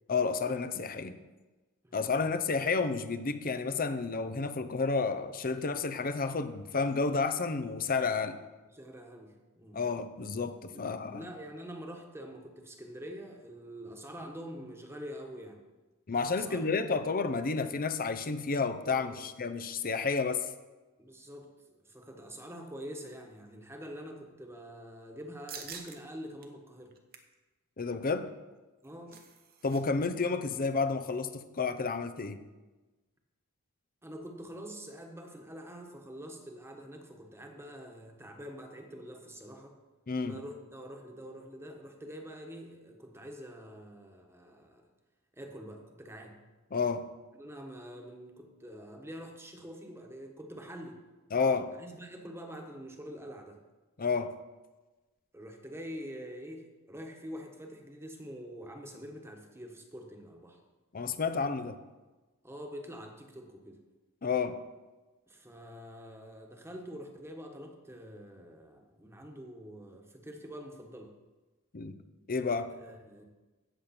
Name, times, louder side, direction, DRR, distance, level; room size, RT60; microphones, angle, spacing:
voice 1, 0.1-1.2 1.9-8.4 9.7-11.3 16.1-20.4 27.8-28.3 29.6-32.4 40.1-40.4 46.7-47.1 51.3-51.7 54.0-54.4 60.9-61.8 64.2-64.6 71.7-71.9 72.3-72.7, left 4 dB, 40° left, 11 dB, 0.7 m, -31 dB
voice 2, 1.8-2.3 8.7-9.8 10.7-10.8 11.1-15.6 16.2-17.1 18.9-19.3 21.0-21.5 21.8-27.0 28.8-29.2 34.0-39.7 40.2-44.8 45.3-46.4 47.4-51.0 51.7-53.6 55.3-60.6 62.4-63.8 65.3-71.1 72.8-73.2, equal, 10° right, 2 dB, 1.4 m, -46 dB
sound 1, 25.5-26.0 26.4-26.5 26.9-27.3 28.6-29.8 30.1-30.2 30.5-30.8, right 7 dB, 45° right, 1.1 m, -47 dB
16.5 x 6.9 x 4.3 m, 1.2 s
head